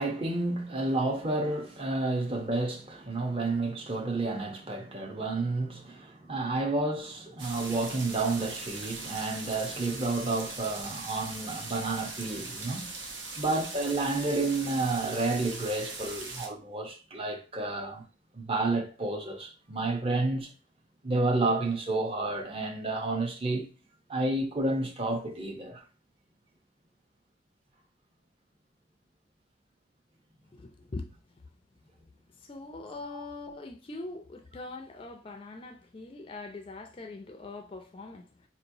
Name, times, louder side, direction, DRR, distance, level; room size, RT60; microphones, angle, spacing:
voice 1, 0.0-12.9 13.4-18.0 18.3-20.5 21.0-23.7 24.1-25.8 33.1-33.2, right 2 dB, 30° right, 0.6 m, -30 dB
sound 1, 7.4-16.5, right 3 dB, 80° right, 1.0 m, -40 dB
voice 2, 30.5-31.1 32.4-38.5, left 3 dB, 30° left, 0.3 m, -42 dB
4.4 x 2.9 x 2.6 m
head